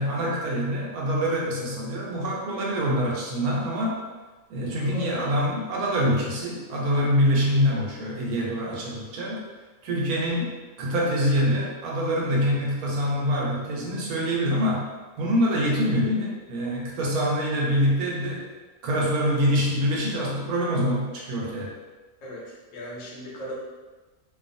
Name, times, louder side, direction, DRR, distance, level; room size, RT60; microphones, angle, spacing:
voice 1, 0.0-4.0 4.5-9.4 9.8-14.9 15.2-18.4 18.8-21.7, equal, 90° right, -3 dB, 1.2 m, -25 dB
voice 2, 4.8-5.2 22.2-23.5, equal, 65° left, -4 dB, 1.0 m, -38 dB
2.7 x 2.4 x 2.5 m, 1.2 s
omnidirectional pair, 1.5 m